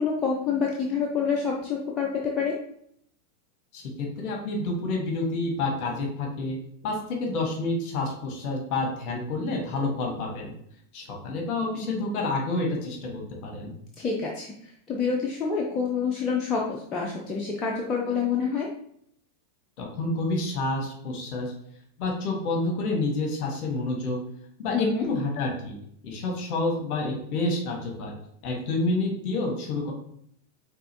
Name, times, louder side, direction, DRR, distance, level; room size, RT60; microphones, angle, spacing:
voice 1, 0.0-2.6 14.0-14.5 14.9-18.7 24.7-25.1, left 5 dB, 25° left, -2 dB, 0.7 m, -27 dB
voice 2, 3.7-6.6 6.8-10.5 10.9-13.7 19.8-21.5 22.0-24.2 24.6-25.8 26.0-28.2 28.4-29.9, left 2 dB, 45° left, 1 dB, 1.3 m, -29 dB
5.4 x 3.6 x 2.8 m, 0.68 s
figure-of-eight pair, 90°, 0 cm